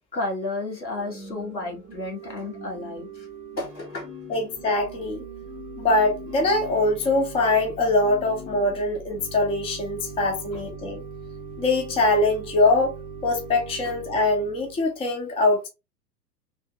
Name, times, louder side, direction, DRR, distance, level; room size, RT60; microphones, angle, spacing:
voice 1, 0.1-3.3 3.6-4.1, left 2 dB, 90° left, 1.5 m, -32 dB
Organ / Church bell, 0.7-14.9, right 3 dB, 15° right, 1.0 m, -40 dB
voice 2, 4.3-5.2 5.8-11.0 11.6-13.0 13.2-15.7, left 2 dB, 10° left, 0.7 m, -23 dB
3.2 x 2.7 x 2.9 m
figure-of-eight pair, 105°, 50 cm